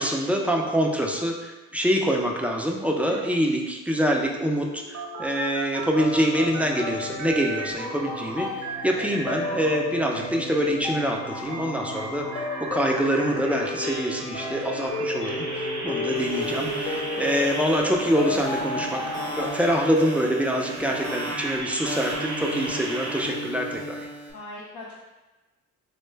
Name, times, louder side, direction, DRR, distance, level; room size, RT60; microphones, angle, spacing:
voice 1, 0.0-19.0 19.3-24.0, equal, 5° right, 0 dB, 0.3 m, -25 dB
sound 1, 4.2-6.9 7.2-9.8 10.1-23.3, right 2 dB, 70° right, 0.8 m, -36 dB
sound 2, 6.0-19.5, left 2 dB, 40° left, 0.9 m, -33 dB
sound 3, 16.1-24.3, equal, 15° left, 0.7 m, -36 dB
voice 2, 24.3-25.0, left 2 dB, 70° left, -6 dB, 0.7 m, -40 dB
3.6 x 2.1 x 3.2 m, 1.1 s
cardioid pair, 90°, 30 cm